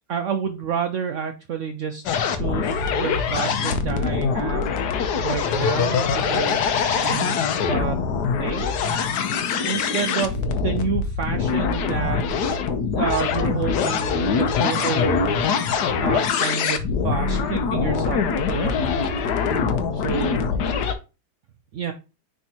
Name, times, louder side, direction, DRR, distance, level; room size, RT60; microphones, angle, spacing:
voice 1, 0.1-4.7 5.2-7.4 7.7-8.0 8.4-8.8 9.6-12.3 13.0-15.5 16.0-19.0 19.9-20.4 21.7-21.9, right 7 dB, 90° right, 6 dB, 0.6 m, -29 dB
sound 1, 2.1-20.9, left 6 dB, 70° left, 1.3 m, -23 dB
9.5 x 3.6 x 2.9 m, 0.30 s
omnidirectional pair, 2.0 m